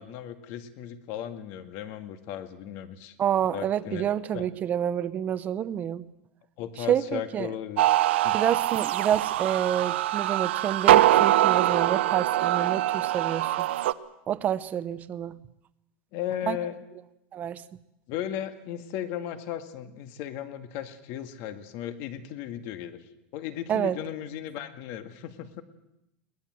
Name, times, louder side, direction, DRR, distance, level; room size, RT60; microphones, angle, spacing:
voice 1, 0.0-3.2 3.5-4.1 4.3-4.5 6.6-7.9 8.2-8.4 16.1-16.8 18.1-23.0 23.3-25.6, left 10 dB, 50° left, 9 dB, 2.0 m, -36 dB
voice 2, 3.2-6.0 6.9-7.5 8.3-13.7 14.3-15.4 16.5-16.6 17.3-17.6 23.7-24.0, right 10 dB, 25° right, 14 dB, 0.8 m, -28 dB
sound 1, 7.8-13.9, right 14 dB, 90° right, 0.8 m, -23 dB
22.0 x 19.0 x 7.8 m, 0.85 s
supercardioid pair, 150°, 6 cm